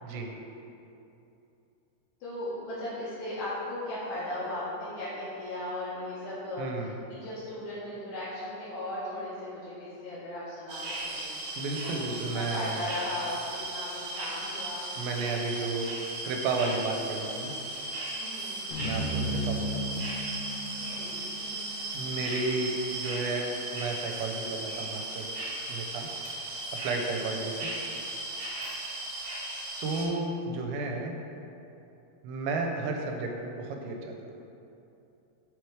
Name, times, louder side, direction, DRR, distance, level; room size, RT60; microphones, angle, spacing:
voice 1, 2.2-10.8 11.1-11.6 11.8-12.1 12.3-13.4 13.7-14.9 15.2-15.4 18.2-18.6 20.8-21.3 27.1-27.4, left 1 dB, 70° left, -12 dB, 2.5 m, -37 dB
voice 2, 6.6-6.9 11.6-12.9 15.0-15.9 16.2-17.6 18.8-20.0 21.9-25.3 25.7-26.1 26.7-27.7 29.8-31.2 32.2-34.1, right 3 dB, 90° right, 2 dB, 2.8 m, -32 dB
sound 1, 10.7-30.1, right 2 dB, 70° right, 2.7 m, -36 dB
sound 2, 18.7-23.0, equal, 85° left, 2.9 m, -35 dB
7.3 x 3.1 x 4.6 m, 2.8 s
omnidirectional pair, 5.1 m